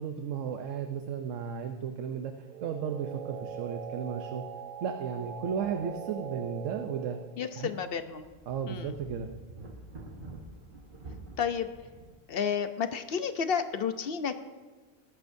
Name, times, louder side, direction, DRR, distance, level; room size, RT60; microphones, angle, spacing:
voice 1, 0.0-2.3 2.6-4.4 4.8-7.2 7.6-7.7 8.5-9.3, right 7 dB, 80° right, 6 dB, 1.1 m, -34 dB
sound 1, 2.4-7.4, right 8 dB, 60° right, 0.5 m, -41 dB
sound 2, 3.5-3.7 4.0-4.1 5.0-6.5 6.8-6.9 7.5-12.2, right 2 dB, 45° right, 1.4 m, -49 dB
voice 2, 7.4-8.3 8.7-9.0 11.4-11.7 12.3-14.4, left 7 dB, 55° left, 10 dB, 0.8 m, -31 dB
20.0 x 11.0 x 2.7 m, 1.4 s
omnidirectional pair, 1.3 m